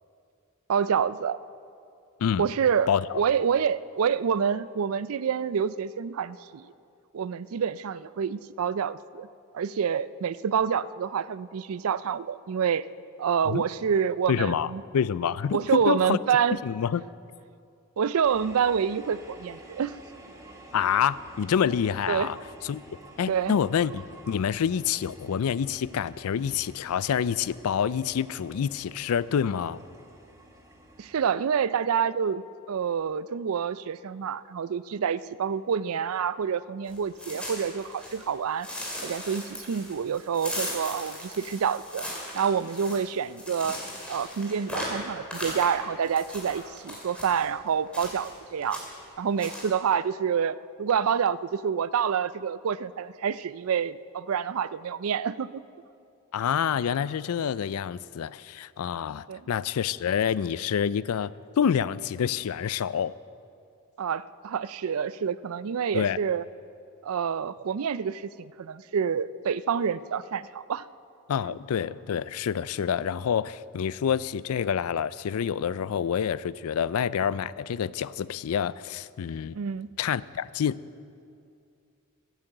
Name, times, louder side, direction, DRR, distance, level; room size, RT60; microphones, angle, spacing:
voice 1, 0.7-1.4 2.4-2.9 3.1-6.7 7.1-9.3 9.5-12.8 13.2-14.8 15.5-16.6 18.0-20.0 22.1-22.3 23.3-23.5 31.0-38.7 39.0-42.0 42.3-43.8 44.1-48.8 49.2-55.6 59.3-59.4 64.0-66.4 67.0-70.9 79.5-79.9, right 7 dB, 70° right, 17 dB, 0.4 m, -27 dB
voice 2, 2.9-3.2 13.5-13.6 14.3-16.2 16.5-17.0 20.7-22.4 22.6-22.8 23.2-29.8 56.3-61.3 61.6-63.1 65.9-66.2 71.3-79.6 80.0-80.8, left 8 dB, 80° left, 18 dB, 0.4 m, -27 dB
sound 1, 18.2-31.3, right 1 dB, 15° right, 1.3 m, -50 dB
sound 2, 36.9-38.3 38.6-47.4 47.9-48.4 48.6-49.1 49.4-49.7, left 1 dB, 5° left, 3.1 m, -37 dB
14.5 x 9.1 x 7.8 m, 2.4 s
head